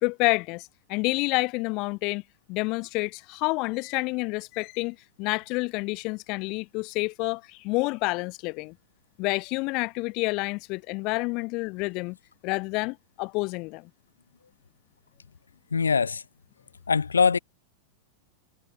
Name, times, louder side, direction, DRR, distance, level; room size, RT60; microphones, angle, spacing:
voice 1, 0.0-2.2 2.5-8.7 9.2-12.2 12.4-13.9, left 26 dB, 40° left, 0.4 m, -29 dB
voice 2, 15.7-16.2 16.9-17.4, left 5 dB, 75° left, 0.8 m, -22 dB
figure-of-eight pair, 90°, 0 cm